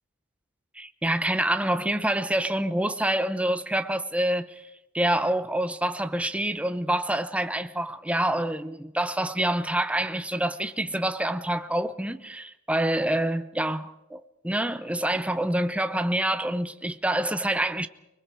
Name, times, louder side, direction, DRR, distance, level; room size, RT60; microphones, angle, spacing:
voice 1, 0.8-4.7 4.9-17.9, right 1 dB, 5° right, 0.7 m, -27 dB
29.0 x 20.5 x 4.6 m
head